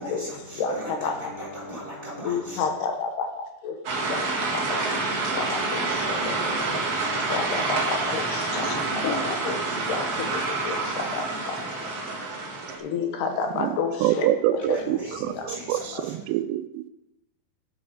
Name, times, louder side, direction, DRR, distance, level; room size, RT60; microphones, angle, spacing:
voice 1, 0.0-2.6 7.0-7.2 12.6-12.8 14.6-16.2, right 1 dB, 10° right, -4 dB, 3.3 m, -38 dB
voice 2, 0.6-1.3 2.2-11.9 12.8-14.8 15.3-15.5 15.9-16.1, left 5 dB, 75° left, 4 dB, 3.1 m, -31 dB
sound 1, 3.8-12.8, right 3 dB, 45° right, 2.0 m, -27 dB
voice 3, 14.0-15.0 15.7-16.9, right 13 dB, 90° right, 12 dB, 2.8 m, -25 dB
9.6 x 7.7 x 5.5 m, 0.91 s
omnidirectional pair, 4.9 m